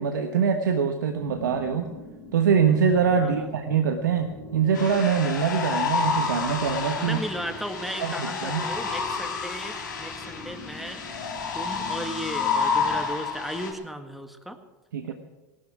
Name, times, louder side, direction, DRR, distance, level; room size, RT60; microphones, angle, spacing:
voice 1, 0.0-1.9 2.3-7.2 8.0-8.6 14.9-15.1, right 6 dB, 85° right, 5 dB, 1.2 m, -24 dB
sound 1, 1.0-13.0, left 2 dB, 55° left, 5.0 m, -44 dB
voice 2, 3.2-3.5 7.0-11.0 11.3-14.6, equal, ahead, 6 dB, 1.8 m, -36 dB
sound 2, 4.7-13.7, left 5 dB, 90° left, 2.8 m, -29 dB
18.0 x 12.0 x 6.1 m, 1.1 s
hypercardioid pair, 90°, 10 cm